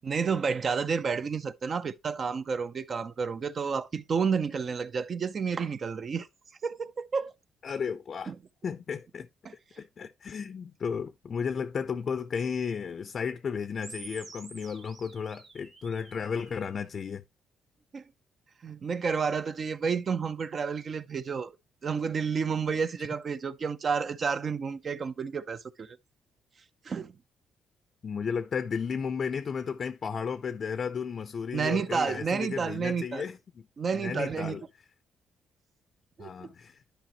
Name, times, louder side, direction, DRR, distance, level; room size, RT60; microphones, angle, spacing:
voice 1, 0.0-6.3 6.6-7.3 8.3-8.4 9.4-9.5 17.9-18.0 18.6-21.5 21.8-25.9 26.8-27.1 31.5-33.3 33.8-34.6 36.2-36.5, right 5 dB, 45° right, 0.6 m, -30 dB
voice 2, 7.6-8.3 8.6-9.3 9.8-17.2 23.0-23.1 28.0-33.7 33.9-34.6 36.2-36.8, left 6 dB, 50° left, 0.5 m, -34 dB
sound 1, 13.8-16.8, right 4 dB, 60° right, 2.4 m, -49 dB
11.5 x 5.0 x 3.0 m
cardioid pair, 90°, 0 cm